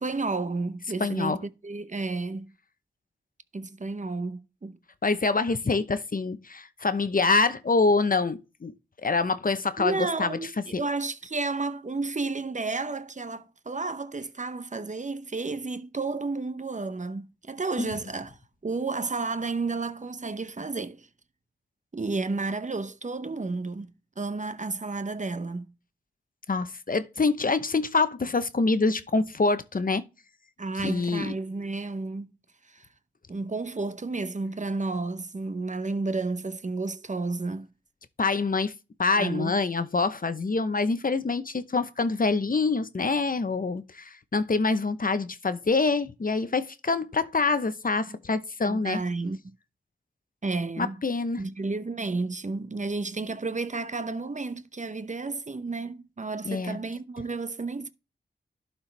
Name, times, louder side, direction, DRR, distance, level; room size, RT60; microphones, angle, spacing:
voice 1, 0.0-2.5 3.5-4.8 9.8-21.1 21.9-23.9 24.2-25.7 30.6-32.3 32.7-32.9 33.3-37.7 39.1-39.5 48.7-49.4 50.4-51.0 51.4-57.9, right 3 dB, 40° right, 0.8 m, -32 dB
voice 2, 1.0-1.4 5.0-8.7 9.0-10.4 10.7-10.8 17.8-17.9 26.5-30.0 30.8-31.3 38.2-38.7 39.0-49.0 50.8-51.4 56.4-56.8, left 3 dB, 45° left, 0.8 m, -26 dB
11.5 x 4.4 x 3.3 m
cardioid pair, 45°, 19 cm